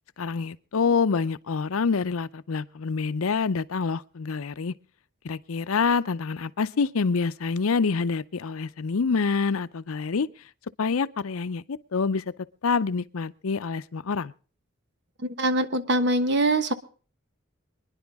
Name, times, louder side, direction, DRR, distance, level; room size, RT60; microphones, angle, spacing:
voice 1, 0.2-4.7 5.2-10.3 10.8-12.2 12.6-14.3, left 5 dB, 85° left, 0.6 m, -26 dB
voice 2, 15.2-16.7, right 2 dB, 55° right, 1.2 m, -23 dB
25.0 x 10.5 x 3.5 m
head